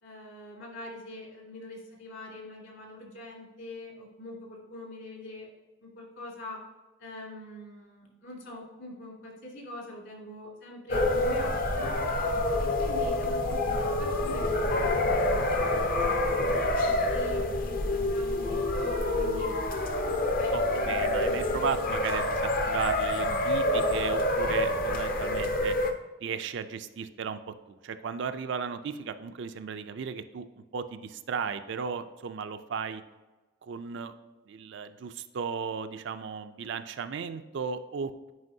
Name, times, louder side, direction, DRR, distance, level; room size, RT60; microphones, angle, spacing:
voice 1, 0.0-5.5 5.8-6.6 7.0-11.9 12.6-19.5 20.4-21.8, left 1 dB, 60° left, -2 dB, 2.2 m, -43 dB
sound 1, 10.9-25.9, left 1 dB, 45° left, 0.6 m, -27 dB
voice 2, 20.5-25.7 26.2-33.0 33.6-34.1 34.5-38.3, right 6 dB, 55° right, 10 dB, 0.4 m, -35 dB
9.6 x 4.6 x 2.7 m, 1.2 s
head